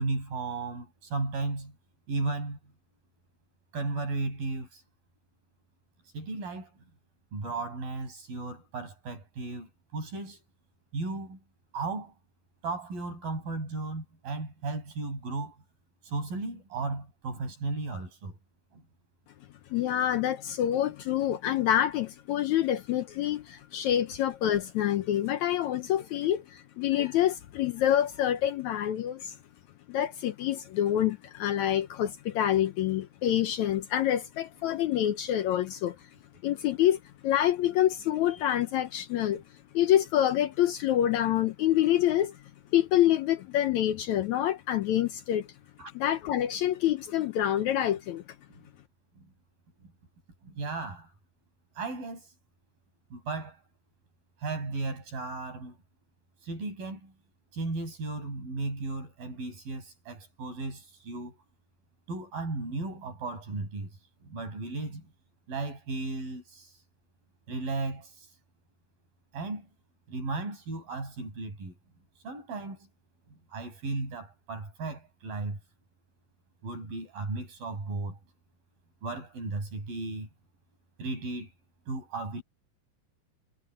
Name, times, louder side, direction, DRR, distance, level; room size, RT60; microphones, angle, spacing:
voice 1, 0.0-1.8 2.1-2.6 3.7-4.8 6.1-6.8 7.3-10.4 10.9-11.4 11.7-12.1 12.6-15.6 16.0-18.4 18.7-18.8 45.8-45.9 48.5-48.6 49.1-49.3 50.4-51.1 51.8-52.3 53.1-53.6 54.4-55.8 56.4-57.1 57.5-61.4 62.1-63.9 64.2-65.1 65.5-66.8 67.5-68.3 69.3-69.7 70.1-71.7 72.2-72.9 73.3-75.6 76.6-78.2 79.0-80.3 81.0-81.5 81.9-82.4, right 3 dB, 85° right, 9.7 m, -35 dB
voice 2, 19.7-29.4 29.9-36.0 36.4-39.4 39.7-42.4 42.7-45.5 46.0-48.2, left 11 dB, 75° left, 1.8 m, -27 dB
omnidirectional pair, 4.0 m